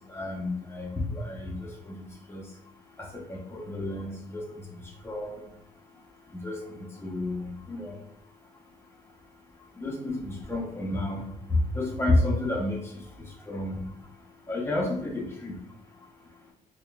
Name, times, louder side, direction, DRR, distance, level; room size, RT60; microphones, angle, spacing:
voice 1, 0.1-2.0 2.3-2.4 3.0-4.4 5.0-5.4 6.3-8.0 9.8-12.8 13.2-13.8 14.5-15.5, left 2 dB, 15° left, -2 dB, 0.9 m, -30 dB
4.2 x 3.2 x 2.4 m, 0.74 s
cardioid pair, 115°, 14 cm